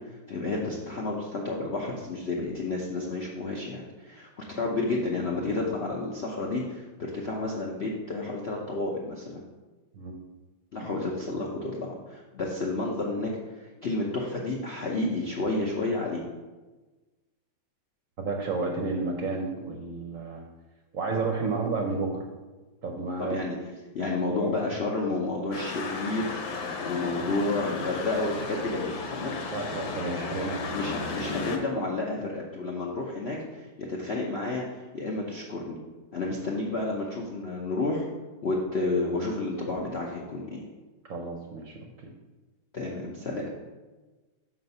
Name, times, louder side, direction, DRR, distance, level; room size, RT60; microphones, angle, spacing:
voice 1, 0.1-9.4 10.7-16.2 23.2-23.5 23.9-29.4 30.7-35.8 36.1-38.1 38.4-40.6 42.7-43.5, left 2 dB, 60° left, -2 dB, 0.6 m, -31 dB
voice 2, 18.2-20.4 20.9-22.3 22.8-23.4 24.4-24.5 29.5-31.2 41.1-42.1, right 3 dB, 60° right, 2 dB, 0.9 m, -32 dB
sound 1, 25.5-31.6, left 4 dB, 90° left, 1.7 m, -34 dB
6.4 x 4.4 x 5.4 m, 1.2 s
omnidirectional pair, 2.1 m